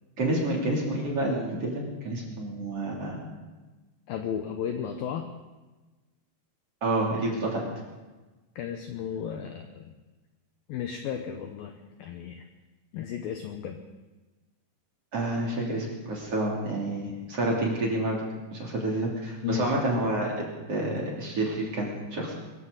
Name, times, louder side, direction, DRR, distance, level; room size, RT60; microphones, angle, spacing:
voice 1, 0.2-3.2 6.8-7.6 15.1-18.2 18.5-22.3, right 2 dB, 35° right, -3 dB, 3.6 m, -29 dB
voice 2, 4.1-5.3 8.6-9.9 10.7-12.4 12.9-13.8 19.4-19.7, left 8 dB, 85° left, 4 dB, 2.1 m, -34 dB
24.0 x 15.0 x 4.1 m, 1.2 s
omnidirectional pair, 5.4 m